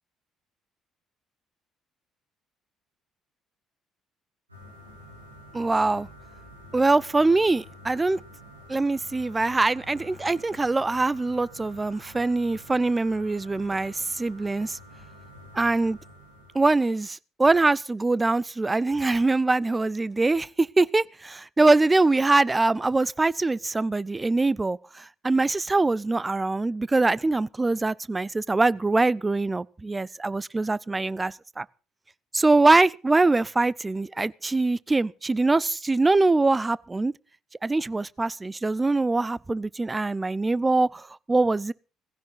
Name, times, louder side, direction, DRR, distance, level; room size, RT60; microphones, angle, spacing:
sound 1, 4.5-17.0, equal, 90° right, 5.0 m, -48 dB
voice 1, 5.5-6.1 6.7-8.2 8.7-14.8 15.5-16.0 16.5-31.7 32.3-37.1 37.6-41.7, right 3 dB, 20° right, 0.7 m, -23 dB
18.5 x 16.0 x 4.0 m
figure-of-eight pair, 50°, 0 cm